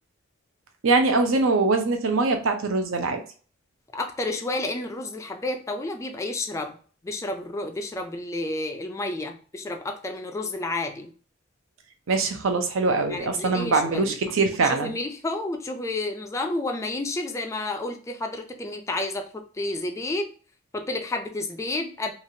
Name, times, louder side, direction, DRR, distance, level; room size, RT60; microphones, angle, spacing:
voice 1, 0.8-3.2 12.1-14.9, right 3 dB, 70° right, 6 dB, 0.6 m, -23 dB
voice 2, 3.9-6.8 7.0-11.1 13.1-14.2 14.6-20.3 20.7-22.1, left 2 dB, 15° left, 4 dB, 0.3 m, -30 dB
3.1 x 2.4 x 2.6 m, 0.41 s
head